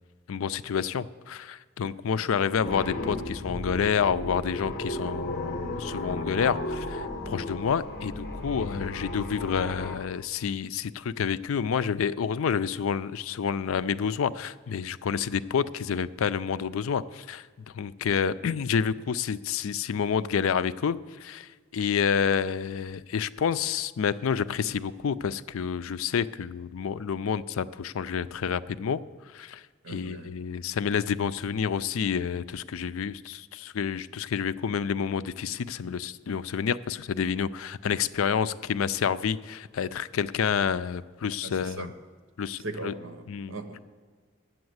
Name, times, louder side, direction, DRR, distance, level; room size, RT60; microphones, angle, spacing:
voice 1, 0.3-17.5 17.7-29.0 29.3-41.9 42.4-42.9 43.3-43.6, left 7 dB, 80° left, 15 dB, 0.4 m, -29 dB
voice 2, 1.8-2.5 29.8-30.3 41.4-41.9 42.6-43.8, right 2 dB, 70° right, 7 dB, 1.1 m, -40 dB
sound 1, 2.6-10.0, left 1 dB, 50° left, 1.0 m, -34 dB
10.5 x 7.9 x 7.9 m, 1.5 s
head